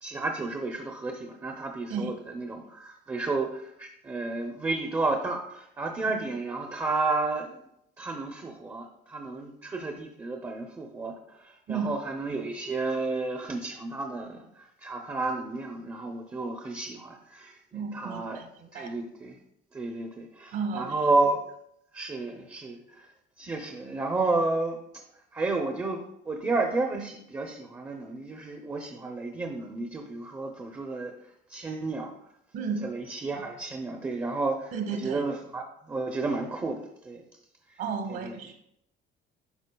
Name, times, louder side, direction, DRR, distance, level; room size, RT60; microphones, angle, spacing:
voice 1, 0.0-7.6 8.0-18.4 18.7-19.4 19.7-21.4 21.9-23.1 23.4-25.0 25.3-31.1 31.5-32.1 32.8-34.7 35.0-36.8 37.0-37.2 38.1-38.3, right 3 dB, 15° right, 3 dB, 0.6 m, -31 dB
voice 2, 17.7-18.9 20.5-21.0 32.5-32.9 34.7-35.2 37.8-38.5, right 5 dB, 65° right, 7 dB, 1.3 m, -33 dB
11.0 x 5.1 x 2.2 m, 0.75 s
cardioid pair, 165°, 20 cm